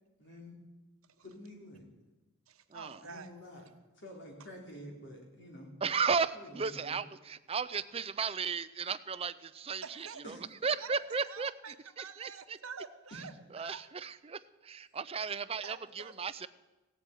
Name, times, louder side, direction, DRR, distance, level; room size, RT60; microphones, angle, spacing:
voice 1, 0.2-0.6 1.2-1.8 3.0-3.6 4.0-5.7 6.3-7.0 10.2-10.4, equal, 55° left, 0 dB, 3.8 m, -49 dB
voice 2, 2.5-3.3 9.8-10.2 10.8-13.9 15.6-16.1, right 5 dB, 75° right, 9 dB, 1.1 m, -47 dB
voice 3, 5.8-10.3 10.6-12.3 13.5-16.5, right 5 dB, 25° right, 13 dB, 0.5 m, -35 dB
16.0 x 8.2 x 9.2 m, 1.1 s
head